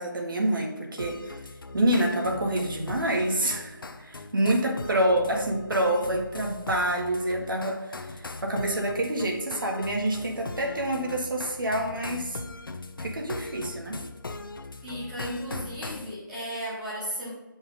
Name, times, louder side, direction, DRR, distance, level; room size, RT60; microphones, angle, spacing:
voice 1, 0.0-1.4 1.7-7.9 8.4-12.4 13.0-14.0, right 1 dB, 75° right, 0 dB, 1.8 m, -27 dB
sound 1, 1.0-16.1, left 3 dB, 85° left, 0.7 m, -40 dB
voice 2, 14.8-17.3, equal, 5° right, -8 dB, 0.9 m, -35 dB
7.3 x 5.4 x 3.9 m, 1.1 s
figure-of-eight pair, 175°, 11 cm